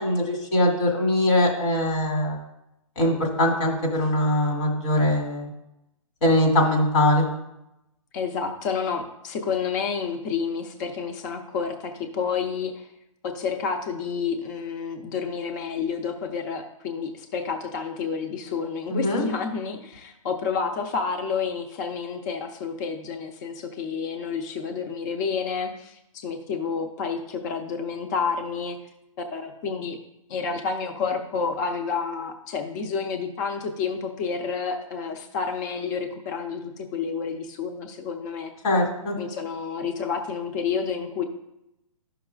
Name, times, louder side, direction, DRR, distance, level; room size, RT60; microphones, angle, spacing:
voice 1, 0.0-2.4 3.0-5.5 6.2-7.3 18.9-19.2 38.6-39.1, left 1 dB, 55° left, 0 dB, 2.3 m, -22 dB
voice 2, 8.1-12.9 13.2-28.8 29.3-30.0 30.3-38.5 39.2-41.2, left 5 dB, 30° left, 5 dB, 0.7 m, -29 dB
12.0 x 5.9 x 2.4 m, 0.87 s
hypercardioid pair, 150°, 18 cm